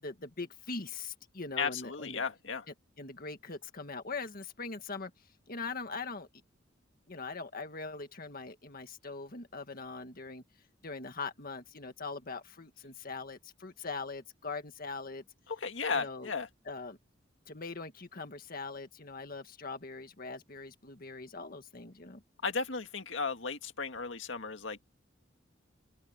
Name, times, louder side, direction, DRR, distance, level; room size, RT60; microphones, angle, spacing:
voice 1, 0.0-2.2 3.0-5.1 5.5-6.3 7.1-10.4 10.8-15.2 15.9-16.3 16.7-17.0 17.5-22.2, left 4 dB, 50° left, 1.8 m, -41 dB
voice 2, 1.6-2.7 15.5-16.5 22.4-24.8, left 5 dB, 80° left, 1.9 m, -35 dB
open air
head